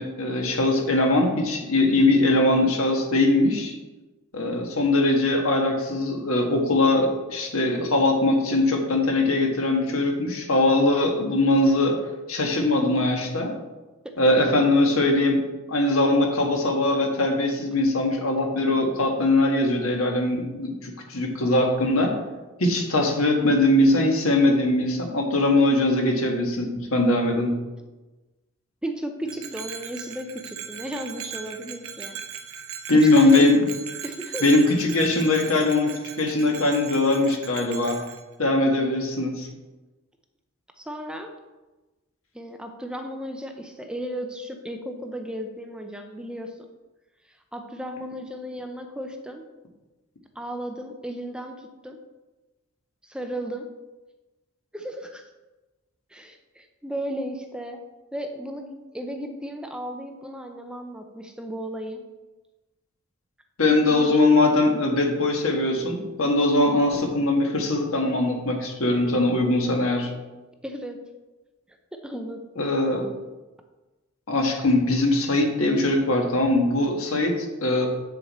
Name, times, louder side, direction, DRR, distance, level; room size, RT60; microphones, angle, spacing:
voice 1, 0.0-3.7 4.3-12.0 12.3-13.5 14.2-15.4 15.7-22.1 22.6-27.5 32.9-33.6 34.4-38.0 38.4-39.5 63.6-70.1 72.6-73.1 74.3-77.9, left 2 dB, 75° left, 2 dB, 1.6 m, -21 dB
voice 2, 14.0-14.4 28.8-32.2 32.9-33.5 34.0-34.4 38.6-39.0 40.8-41.4 42.3-46.7 47.5-49.4 50.4-52.0 53.0-53.7 54.7-55.2 56.1-57.8 58.1-62.1 63.9-64.2 70.6-71.0 71.9-72.4, equal, 5° right, 4 dB, 0.6 m, -35 dB
Bell, 29.3-38.2, right 7 dB, 70° right, 0.8 m, -38 dB
8.1 x 6.7 x 4.3 m, 1.1 s
head